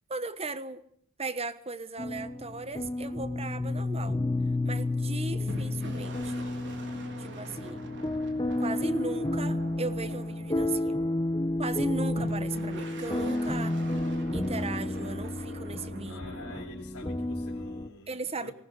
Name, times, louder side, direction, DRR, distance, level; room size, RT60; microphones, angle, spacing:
voice 1, 0.1-0.8 1.2-4.2 4.6-6.5 7.2-7.8 8.6-11.0 11.6-13.8 14.3-16.2 18.1-18.5, right 3 dB, 25° right, 13 dB, 1.3 m, -37 dB
sound 1, 2.0-17.9, left 2 dB, 20° left, 0.9 m, -31 dB
sound 2, 5.5-11.4 12.2-16.7, right 2 dB, 55° right, 3.9 m, -45 dB
voice 2, 16.1-18.5, left 3 dB, 90° left, -3 dB, 3.9 m, -47 dB
19.5 x 19.5 x 8.1 m, 0.63 s
head